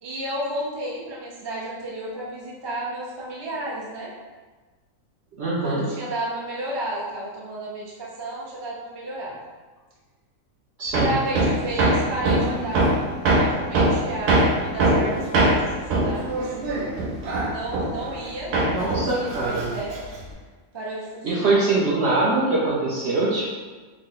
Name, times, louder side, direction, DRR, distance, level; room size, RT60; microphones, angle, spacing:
voice 1, 0.0-4.1 5.6-9.4 11.0-12.9 13.3-16.8 17.4-18.5 18.8-20.0 20.7-21.6, right 1 dB, 40° right, -5 dB, 0.3 m, -32 dB
voice 2, 5.4-5.8 10.8-11.2 18.7-19.7 21.2-23.6, right 2 dB, 60° right, -6 dB, 0.7 m, -23 dB
Hammer, 10.9-18.3 18.5-20.3, right 1 dB, 80° right, 1.2 m, -22 dB
3.9 x 2.1 x 3.7 m, 1.3 s
omnidirectional pair, 1.7 m